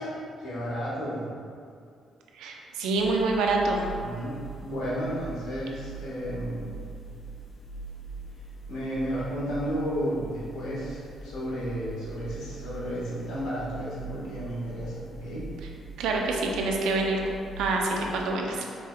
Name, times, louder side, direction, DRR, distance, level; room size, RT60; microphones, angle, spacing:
voice 1, 0.4-1.3 4.0-6.8 8.7-15.4, equal, 85° left, -8 dB, 1.3 m, -33 dB
voice 2, 2.4-3.8 16.0-17.2 17.6-18.6, right 3 dB, 90° right, 0 dB, 0.5 m, -26 dB
sound 1, 3.0-18.4, right 2 dB, 40° left, 0.4 m, -42 dB
4.9 x 3.4 x 2.2 m, 2.3 s
cardioid pair, 90°, 0 cm